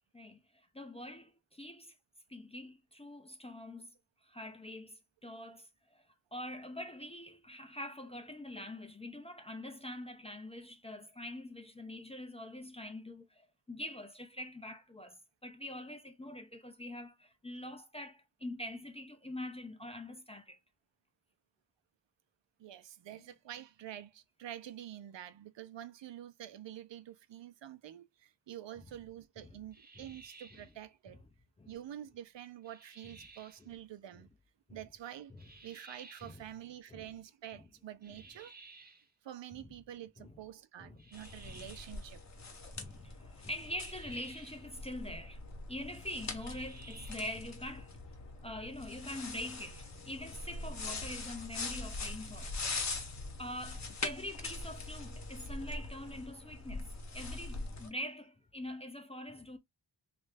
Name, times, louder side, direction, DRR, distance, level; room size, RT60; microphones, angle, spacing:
voice 1, 0.1-1.9 2.3-3.9 4.2-6.0 6.3-20.6 29.5-29.6 31.6-31.7 34.7-34.8 35.3-35.4 36.2-36.4 36.9-37.1 40.2-40.3 40.8-41.0 41.5-41.6 42.8-45.4 45.7-47.9 48.4-52.6 53.4-59.6, left 1 dB, 15° left, 0.4 m, -44 dB
voice 2, 22.6-31.2 31.7-34.3 34.7-35.3 35.6-38.5 39.2-42.2 42.6-43.0, right 11 dB, 75° right, 0.6 m, -48 dB
sound 1, 29.7-30.8 32.6-33.6 35.4-36.4 38.0-39.1 41.0-42.0 43.6-44.7 46.3-47.4, right 3 dB, 20° right, 0.7 m, -56 dB
sound 2, 41.1-57.9, left 3 dB, 40° left, 0.8 m, -43 dB
3.1 x 2.5 x 3.2 m
wide cardioid pair, 155°, 43 cm